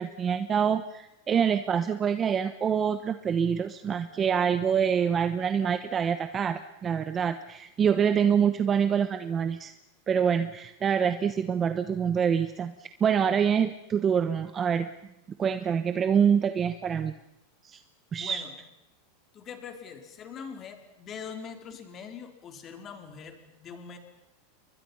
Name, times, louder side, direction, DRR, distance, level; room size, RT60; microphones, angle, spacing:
voice 1, 0.0-9.7 10.1-14.9 15.4-17.1 17.6-17.8 18.1-18.4, right 7 dB, 20° right, 10 dB, 1.1 m, -26 dB
voice 2, 18.1-18.5 19.3-24.0, left 6 dB, 30° left, 6 dB, 4.3 m, -42 dB
30.0 x 23.5 x 5.6 m, 0.88 s
supercardioid pair, 145°, 0 cm